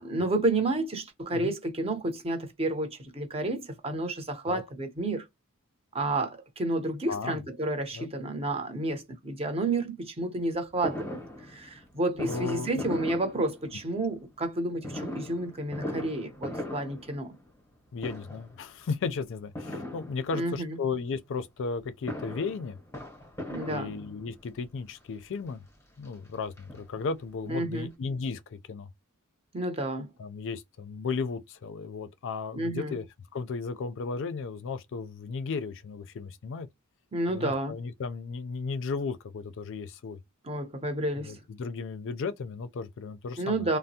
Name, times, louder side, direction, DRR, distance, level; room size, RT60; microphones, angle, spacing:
voice 1, 0.0-5.3 5.9-11.2 11.5-17.4 20.3-20.8 23.5-23.9 27.5-27.9 29.5-30.1 32.5-33.0 37.1-37.7 40.4-41.4 43.4-43.8, right 2 dB, 25° right, 0.7 m, -30 dB
voice 2, 7.1-7.4 7.9-8.1 12.1-12.7 17.9-22.8 23.7-25.7 26.0-28.9 30.2-33.1 33.3-36.7 37.3-40.2 41.2-43.7, left 4 dB, 60° left, 0.4 m, -35 dB
Fireworks, 10.8-14.0 14.8-17.7 18.0-18.6 19.5-20.6 21.8-24.4 25.2-25.3 25.6-25.7 26.0-27.3 27.6-27.7 27.9-28.0, left 1 dB, 15° left, 0.8 m, -39 dB
3.3 x 2.0 x 2.7 m
head